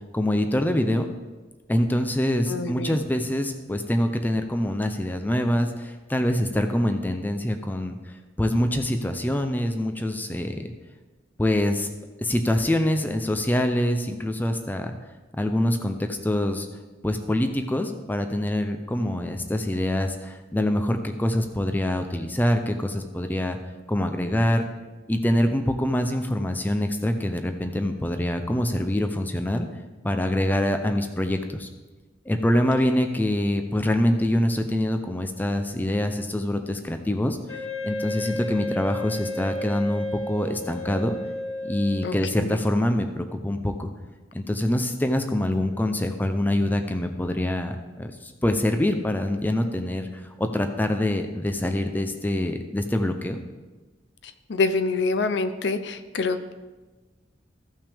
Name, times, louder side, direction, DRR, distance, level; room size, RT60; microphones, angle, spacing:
voice 1, 0.1-1.1 1.7-8.0 8.4-10.7 11.4-11.9 12.2-14.9 15.4-16.7 17.0-23.6 23.9-24.7 25.1-29.7 30.0-31.7 32.3-37.4 37.8-41.2 41.6-43.9 44.3-50.1 50.4-53.4, left 1 dB, 10° left, 6 dB, 0.5 m, -25 dB
voice 2, 2.5-3.0 42.0-42.6 54.2-56.5, left 3 dB, 65° left, 11 dB, 0.5 m, -26 dB
Wind instrument woodwind instrument, 37.5-42.5, left 1 dB, 30° left, 3.0 m, -33 dB
14.5 x 5.9 x 3.5 m, 1.2 s
head